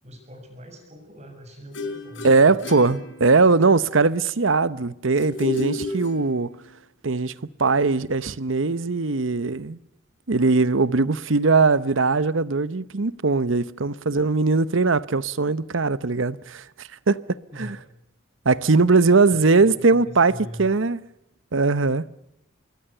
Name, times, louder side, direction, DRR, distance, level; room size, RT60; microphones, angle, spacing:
voice 1, 0.0-2.7 14.0-14.2 17.5-17.9 19.6-20.8, equal, 35° right, 6.8 m, -42 dB
sound 1, 1.7-3.7 5.2-6.7, left 2 dB, 65° left, 4.7 m, -32 dB
voice 2, 2.2-6.5 7.0-7.3 7.6-9.8 10.3-17.8 18.4-21.0 21.5-22.1, right 3 dB, 75° right, 0.9 m, -20 dB
26.5 x 21.5 x 6.8 m
head